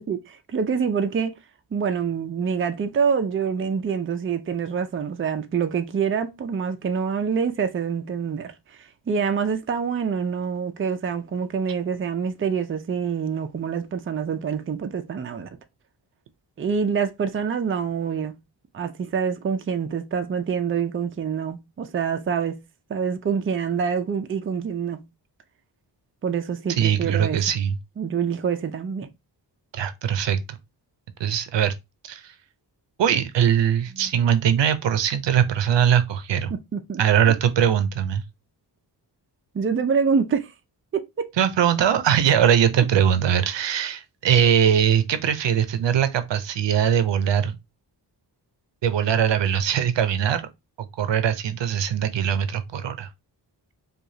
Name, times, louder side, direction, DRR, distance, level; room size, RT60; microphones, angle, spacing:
voice 1, 0.0-1.3 1.7-15.5 16.6-18.3 18.7-22.6 22.9-25.0 26.2-27.4 28.0-29.1 34.0-34.1 36.5-37.0 39.5-40.5 40.9-41.3, right 6 dB, 30° right, 0.5 m, -26 dB
voice 2, 26.8-27.8 29.7-30.6 31.2-31.7 32.0-32.3 33.0-36.5 37.0-38.2 41.4-47.6 48.8-50.4 50.8-53.1, right 9 dB, 80° right, 0.7 m, -21 dB
4.8 x 2.4 x 2.7 m
wide cardioid pair, 125°, 43 cm